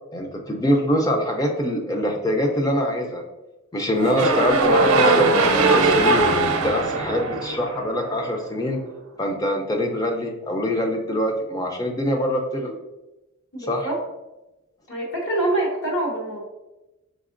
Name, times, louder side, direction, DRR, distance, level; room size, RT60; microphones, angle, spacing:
voice 1, 0.1-3.2 3.7-6.2 6.5-8.8 9.2-12.7 13.7-13.9, equal, 15° left, 2 dB, 0.5 m, -24 dB
sound 1, 4.0-8.2, right 3 dB, 80° right, 0.6 m, -20 dB
voice 2, 13.5-14.0 14.9-16.4, right 2 dB, 60° left, -2 dB, 1.1 m, -25 dB
5.1 x 3.6 x 2.5 m, 1.0 s
head